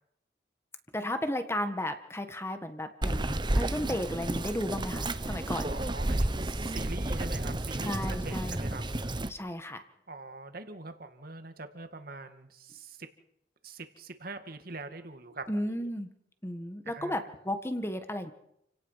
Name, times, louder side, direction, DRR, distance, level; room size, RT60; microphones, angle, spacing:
voice 1, 0.9-5.7 7.8-8.6 9.3-9.8 15.5-16.1 16.4-18.3, left 1 dB, 15° left, 8 dB, 1.6 m, -34 dB
Bird vocalization bird call bird song, 3.0-9.3, right 1 dB, 25° right, 1.1 m, -31 dB
voice 2, 5.6-8.8 10.1-13.1 13.6-15.9 16.9-17.2, right 3 dB, 55° right, 8 dB, 2.0 m, -43 dB
29.0 x 17.5 x 5.8 m, 0.76 s
head